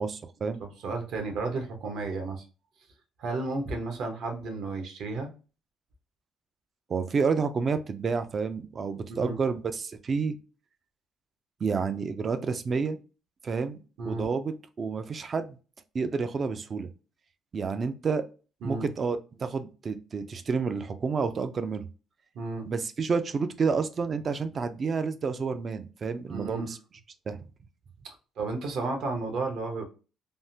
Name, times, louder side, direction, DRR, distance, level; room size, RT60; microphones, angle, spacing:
voice 1, 0.0-0.6 6.9-10.3 11.6-13.0 13.4-13.8 14.1-15.6 15.9-16.9 17.5-18.2 18.6-21.9 22.7-26.8 27.3-27.4, right 5 dB, 30° right, 10 dB, 0.3 m, -29 dB
voice 2, 0.6-2.4 3.2-5.3 9.1-9.4 14.0-14.3 18.6-18.9 22.3-22.7 26.3-26.7 28.0-29.8, right 3 dB, 65° right, 3 dB, 0.8 m, -33 dB
3.4 x 2.1 x 2.7 m, 0.34 s
cardioid pair, 145°, 0 cm